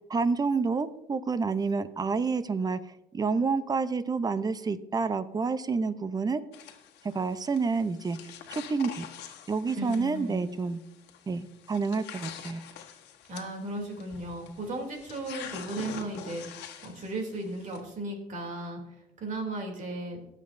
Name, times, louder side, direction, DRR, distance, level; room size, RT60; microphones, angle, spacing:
voice 1, 0.1-2.8 3.1-6.4 7.0-8.2 8.5-9.1 9.5-10.8 11.3-12.6, right 4 dB, 20° right, 13 dB, 0.6 m, -28 dB
sound 1, 6.5-17.8, left 9 dB, 80° left, 1.3 m, -46 dB
voice 2, 9.8-10.5 13.3-18.8 19.2-20.2, right 2 dB, 50° right, 1 dB, 2.9 m, -36 dB
22.5 x 7.5 x 2.6 m, 0.89 s
cardioid pair, 110°, 17 cm